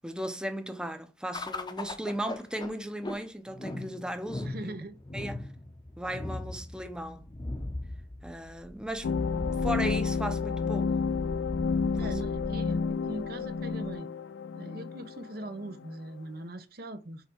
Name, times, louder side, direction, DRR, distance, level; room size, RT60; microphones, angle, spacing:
voice 1, 0.0-4.7 5.1-5.5 6.0-7.3 8.2-11.0 12.0-12.1, right 1 dB, 5° right, 0.7 m, -36 dB
sound 1, 1.3-13.9, left 1 dB, 25° left, 0.8 m, -40 dB
voice 2, 4.4-5.0 11.9-14.1 14.5-17.3, right 1 dB, 55° right, 0.8 m, -41 dB
sound 2, 9.0-15.9, left 5 dB, 90° left, 0.4 m, -30 dB
5.6 x 4.7 x 4.5 m
head